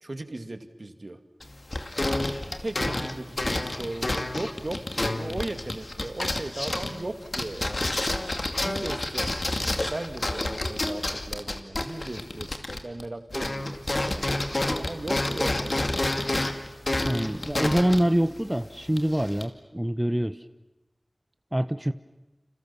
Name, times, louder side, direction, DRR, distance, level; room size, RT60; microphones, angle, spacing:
voice 1, 0.0-1.2 2.0-7.8 8.6-12.5 12.7-16.2, right 2 dB, 60° right, 8 dB, 2.2 m, -37 dB
sound 1, 1.4-13.1 13.3-19.4, left 1 dB, 60° left, 2.3 m, -29 dB
voice 2, 17.0-20.4 21.5-21.9, right 1 dB, 15° right, 11 dB, 0.9 m, -25 dB
30.0 x 27.5 x 7.1 m, 1.0 s
wide cardioid pair, 40°, 0 cm